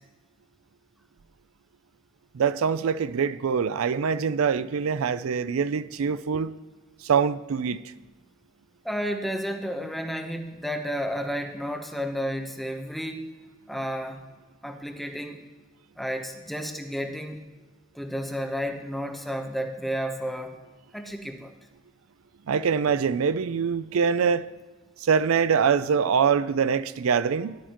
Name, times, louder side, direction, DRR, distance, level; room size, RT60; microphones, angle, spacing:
voice 1, 2.3-6.5 7.0-7.8 22.5-24.5 25.0-27.6, right 6 dB, 90° right, 0.4 m, -24 dB
voice 2, 8.8-13.3 13.7-14.2 14.6-15.4 16.0-17.4 17.9-20.6 20.9-21.5, equal, ahead, 0.9 m, -32 dB
18.5 x 11.5 x 3.0 m
head